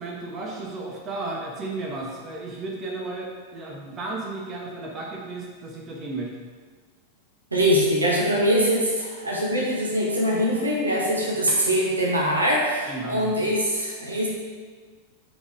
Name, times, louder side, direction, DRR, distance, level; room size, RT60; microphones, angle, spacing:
voice 1, 0.0-6.3 12.9-13.4, right 2 dB, 25° right, -2 dB, 1.4 m, -34 dB
voice 2, 7.5-14.3, equal, 80° right, -3 dB, 1.4 m, -23 dB
7.8 x 4.3 x 4.9 m, 1.5 s
figure-of-eight pair, 90°, 0 cm